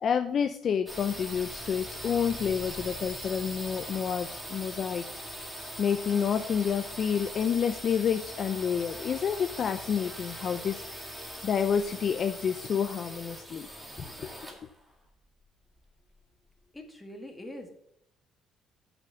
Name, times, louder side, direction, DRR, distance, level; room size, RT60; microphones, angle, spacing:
voice 1, 0.0-5.0 5.8-10.8 11.4-13.7 14.2-14.5, left 7 dB, 45° left, 9 dB, 0.5 m, -29 dB
sound 1, 0.9-16.5, equal, 5° right, 1.8 m, -41 dB
voice 2, 16.7-17.7, left 1 dB, 10° left, 2 dB, 1.9 m, -43 dB
7.7 x 5.9 x 6.8 m, 0.74 s
cardioid pair, 120°, 0 cm